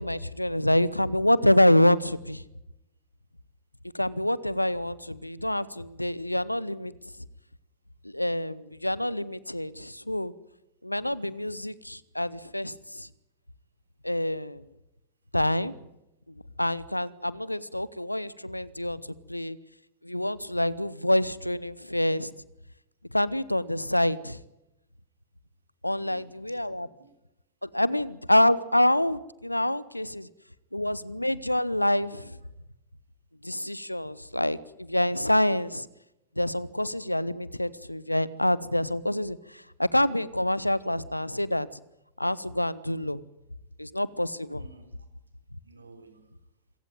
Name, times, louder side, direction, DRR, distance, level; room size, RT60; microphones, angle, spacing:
voice 1, 0.0-2.4 3.9-6.9 8.0-10.3 10.8-13.1 14.0-14.6 15.3-15.7 16.6-19.0 19.3-19.6 20.0-22.3 23.1-24.4 25.8-26.9 27.6-30.3 30.7-32.4 33.4-35.9 36.4-41.7 42.2-43.2 43.8-44.6, left 1 dB, 85° left, 20 dB, 0.8 m, -26 dB
voice 2, 25.9-27.2 44.5-45.0 45.6-46.3, right 2 dB, 75° right, 7 dB, 3.4 m, -53 dB
26.0 x 16.0 x 9.2 m, 0.91 s
figure-of-eight pair, 90°, 0 cm